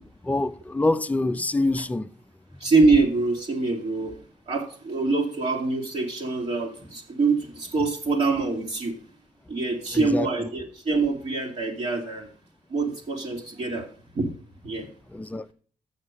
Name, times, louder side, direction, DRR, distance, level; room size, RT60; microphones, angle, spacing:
voice 1, 0.2-2.1 9.9-10.3 15.1-15.5, left 2 dB, 10° left, 0.5 m, -25 dB
voice 2, 2.6-4.1 4.5-8.9 9.5-12.3 12.7-13.9 14.1-14.3 14.6-14.9, right 3 dB, 50° right, 1.8 m, -24 dB
6.8 x 6.6 x 6.1 m
cardioid pair, 70°, 14 cm